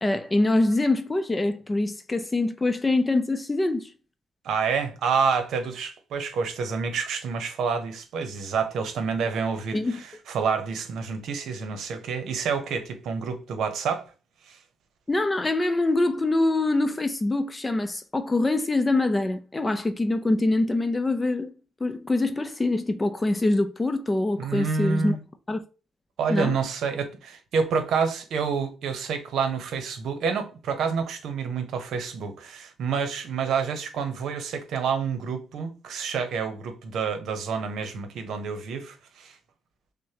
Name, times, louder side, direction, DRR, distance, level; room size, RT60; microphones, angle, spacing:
voice 1, 0.0-3.9 9.7-10.0 15.1-21.5 21.8-25.2 25.5-25.6 26.3-26.6, left 2 dB, 20° left, 0.5 m, -24 dB
voice 2, 4.4-14.0 14.4-14.6 24.4-25.2 26.2-39.3, right 5 dB, 75° right, 0.8 m, -28 dB
6.2 x 2.1 x 2.9 m
cardioid pair, 90°, 0 cm